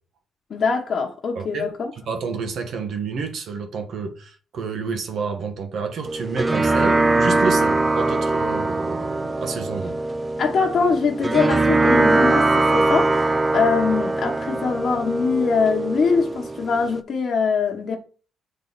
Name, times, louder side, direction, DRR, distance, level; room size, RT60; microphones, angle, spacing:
voice 1, 0.5-1.9 10.4-18.0, left 5 dB, 50° left, 1.1 m, -23 dB
voice 2, 1.3-9.9, right 5 dB, 65° right, 1.2 m, -29 dB
sound 1, 6.1-17.0, right 2 dB, 20° right, 0.4 m, -21 dB
7.7 x 3.3 x 3.9 m
cardioid pair, 90°, 0 cm